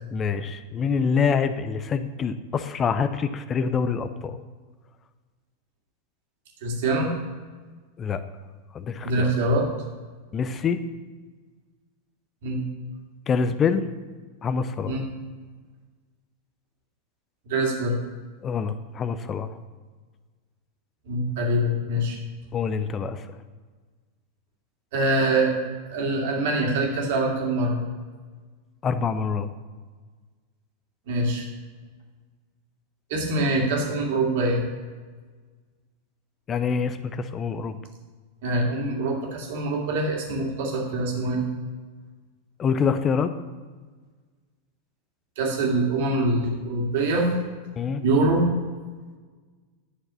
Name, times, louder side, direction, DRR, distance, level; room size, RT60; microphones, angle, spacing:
voice 1, 0.1-4.4 8.0-8.2 8.7-9.3 10.3-10.8 13.3-13.8 14.4-14.9 18.4-19.5 22.5-23.2 28.8-29.5 36.5-37.8 42.6-43.3 47.8-48.0, left 6 dB, 25° left, 11 dB, 0.6 m, -25 dB
voice 2, 6.6-7.1 9.0-9.7 12.4-12.6 14.8-15.0 17.5-17.9 21.1-22.2 24.9-25.5 25.9-27.8 31.1-31.5 33.1-34.6 38.4-41.4 45.4-47.3 48.0-48.4, right 2 dB, 50° right, -1 dB, 2.5 m, -24 dB
11.0 x 6.6 x 5.8 m, 1.4 s
figure-of-eight pair, 90°, 0 cm